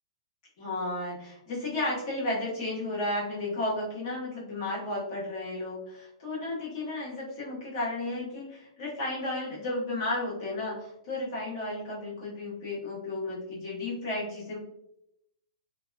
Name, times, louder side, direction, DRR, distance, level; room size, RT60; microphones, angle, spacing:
voice 1, 0.6-14.6, left 2 dB, 35° left, -7 dB, 1.1 m, -33 dB
2.8 x 2.1 x 2.2 m, 0.82 s
hypercardioid pair, 175°, 4 cm